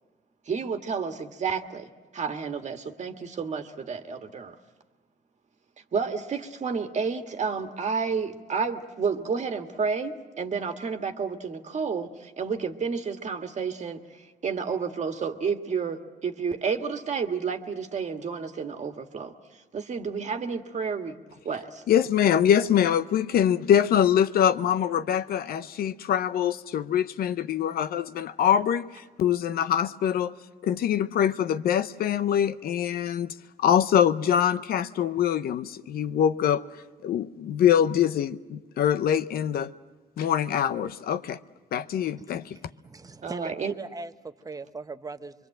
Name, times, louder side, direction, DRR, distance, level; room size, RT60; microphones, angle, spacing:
voice 1, 0.5-4.6 5.9-14.0 14.4-19.3 19.7-21.2 21.5-21.8 43.2-43.7, right 5 dB, 45° right, 1.7 m, -30 dB
voice 2, 21.9-30.4 30.6-36.6 37.0-39.7 40.2-41.4 41.7-42.6, left 9 dB, 70° left, 0.8 m, -24 dB
voice 3, 42.5-44.1 44.4-45.3, right 3 dB, 20° right, 1.0 m, -39 dB
25.0 x 23.5 x 7.7 m
cardioid pair, 90°, 16 cm